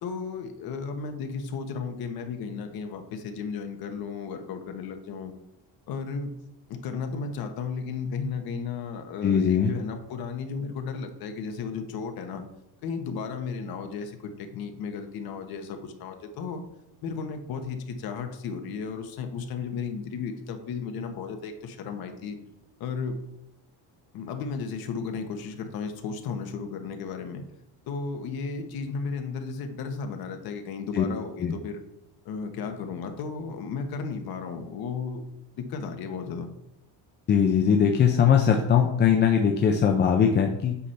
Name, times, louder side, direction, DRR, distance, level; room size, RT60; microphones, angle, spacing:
voice 1, 0.0-5.3 5.9-6.3 6.7-12.4 12.8-16.6 17.0-22.4 22.8-23.1 24.1-27.4 27.9-31.8 32.2-35.2 35.6-36.5, left 5 dB, 60° left, 6 dB, 1.1 m, -34 dB
voice 2, 9.2-9.7 30.9-31.0 31.4-31.5 37.3-40.8, left 7 dB, 25° left, 2 dB, 0.4 m, -21 dB
8.3 x 3.2 x 5.7 m, 0.82 s
cardioid pair, 175°, 42 cm